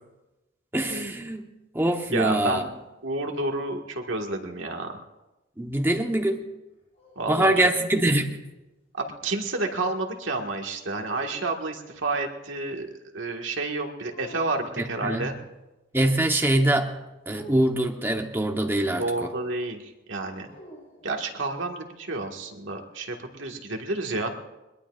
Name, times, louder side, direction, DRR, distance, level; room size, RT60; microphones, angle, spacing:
voice 1, 0.7-1.4 1.7-2.6 5.6-6.4 7.3-8.4 14.8-15.3 15.9-17.0 17.3-19.3, right 1 dB, 10° right, 3 dB, 1.0 m, -24 dB
voice 2, 2.1-2.7 3.0-5.0 7.1-7.7 8.9-12.9 13.1-15.3 19.0-20.5 21.0-24.3, right 2 dB, 80° right, 2 dB, 1.8 m, -30 dB
sound 1, 6.7-8.6 11.0-12.3 14.1-14.9 17.3-18.4 20.4-21.6, equal, 35° left, 7.1 m, -50 dB
21.5 x 21.5 x 2.5 m, 1.0 s
head